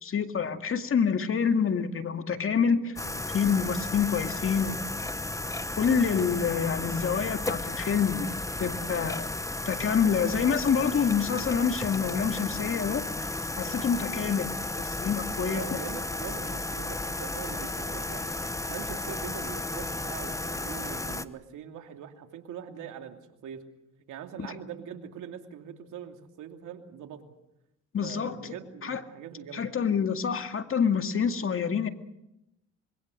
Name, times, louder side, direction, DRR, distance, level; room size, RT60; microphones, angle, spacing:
voice 1, 0.0-3.0 3.3-4.8 5.8-8.3 8.6-9.3 9.7-15.6 24.4-24.5 27.9-28.5 28.8-29.0 29.5-31.9, left 6 dB, 45° left, 7 dB, 2.1 m, -27 dB
sound 1, 3.0-21.2, left 2 dB, 10° left, 1.1 m, -34 dB
voice 2, 15.5-23.6 24.1-27.3 28.0-29.7, right 9 dB, 80° right, 4 dB, 2.8 m, -42 dB
25.5 x 22.0 x 6.5 m, 0.84 s
cardioid pair, 90°, 30 cm